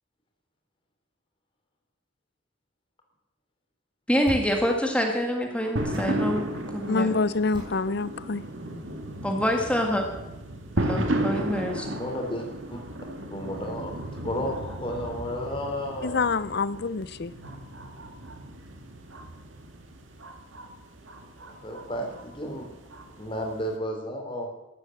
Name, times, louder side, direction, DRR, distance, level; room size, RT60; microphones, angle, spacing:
voice 1, 4.1-7.2 9.2-10.1 10.8-12.0, equal, 5° left, 2 dB, 1.8 m, -26 dB
sound 1, 4.3-4.6 5.9-6.2 7.5-7.9, equal, 25° right, 4.5 m, -37 dB
sound 2, 5.8-23.7, right 1 dB, 80° right, 2.2 m, -35 dB
voice 2, 6.9-8.4 16.0-17.3, left 4 dB, 55° left, 17 dB, 0.6 m, -26 dB
voice 3, 11.9-12.4 12.7-12.8 13.3-16.2 21.5-22.7 23.0-24.5, equal, 25° left, 2 dB, 3.6 m, -33 dB
14.0 x 11.5 x 7.8 m, 0.98 s
head